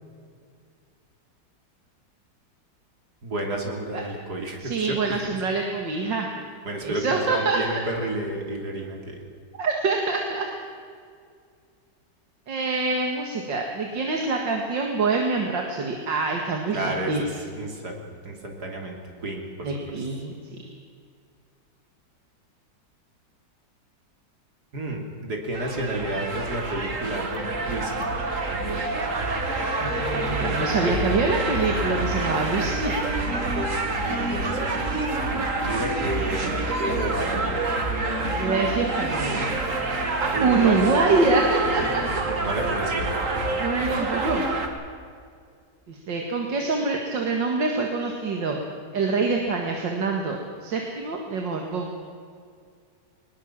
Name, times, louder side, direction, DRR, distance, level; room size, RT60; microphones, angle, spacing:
voice 1, 3.2-5.2 6.7-9.2 16.7-17.3 17.6-17.9 18.2-19.0 19.2-19.7 24.7-27.2 27.6-27.9 30.4-31.2 33.3-34.8 35.6-36.5 36.8-37.7 40.3-40.8 41.1-42.0 42.4-43.6, right 1 dB, 60° right, 1 dB, 3.6 m, -31 dB
voice 2, 4.6-6.3 6.8-7.8 9.6-10.5 12.5-17.2 19.6-20.3 28.7-28.9 29.8-32.9 38.4-39.5 40.2-42.2 43.6-44.4 45.9-48.6 48.9-51.9, right 3 dB, 90° right, 2 dB, 2.6 m, -25 dB
sound 1, 25.5-44.7, right 2 dB, 45° right, 2.4 m, -27 dB
21.0 x 20.5 x 7.5 m, 2.2 s
omnidirectional pair, 1.9 m